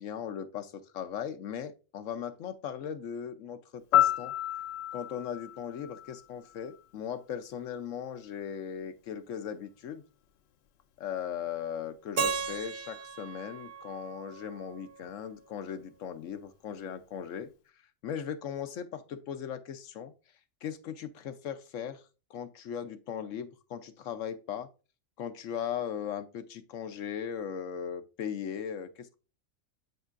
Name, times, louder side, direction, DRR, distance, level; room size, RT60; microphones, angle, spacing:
voice 1, 0.0-4.3 4.9-10.0 11.0-17.5 18.0-20.1 20.6-22.0 22.3-24.7 25.2-29.2, left 8 dB, 80° left, 1.1 m, -38 dB
Piano, 3.9-6.9 15.0-15.2, left 13 dB, 65° left, 0.8 m, -30 dB
Keyboard (musical), 12.2-15.1, right 5 dB, 50° right, 1.0 m, -36 dB
10.5 x 5.4 x 2.5 m
omnidirectional pair, 1.3 m